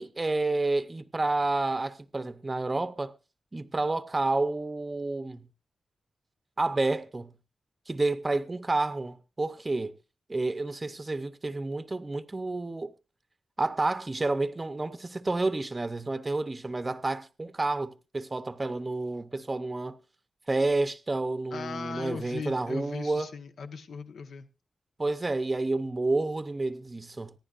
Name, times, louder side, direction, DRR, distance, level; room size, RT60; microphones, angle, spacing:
voice 1, 0.0-3.1 3.5-5.4 6.6-7.3 7.9-9.9 10.3-12.9 13.6-20.0 20.5-23.3 25.0-27.3, right 2 dB, 20° right, 0.7 m, -30 dB
voice 2, 21.5-24.5, left 5 dB, 90° left, 1.1 m, -38 dB
25.0 x 10.5 x 2.5 m
wide cardioid pair, 145°, 0 cm